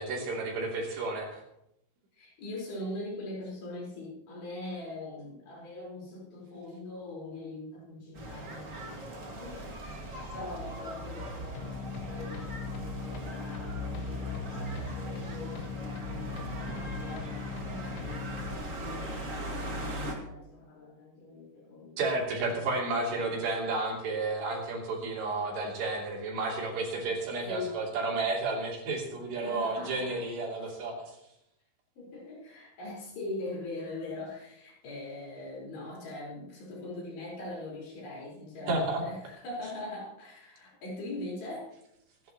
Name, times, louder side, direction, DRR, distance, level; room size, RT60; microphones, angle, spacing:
voice 1, 0.0-1.4 22.0-31.2 38.7-39.0, right 3 dB, 65° right, -2 dB, 5.1 m, -32 dB
voice 2, 2.1-9.9 10.3-22.0 23.1-23.4 27.4-27.8 29.4-30.2 30.6-30.7 32.0-41.7, left 2 dB, 65° left, -5 dB, 6.7 m, -42 dB
sound 1, 8.1-20.1, right 1 dB, 90° right, 0.7 m, -39 dB
sound 2, 11.6-18.6, left 5 dB, 80° left, 3.4 m, -39 dB
26.0 x 11.0 x 3.1 m, 0.82 s
omnidirectional pair, 5.3 m